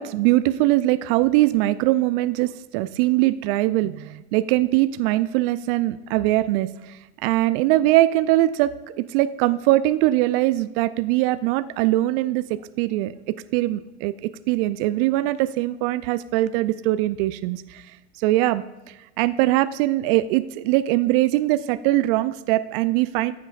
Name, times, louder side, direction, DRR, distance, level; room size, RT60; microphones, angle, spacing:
voice 1, 0.0-8.7 9.0-17.8 18.2-23.3, right 16 dB, 50° right, 13 dB, 0.5 m, -22 dB
14.5 x 8.1 x 2.5 m, 1.1 s
hypercardioid pair, 90°, 38 cm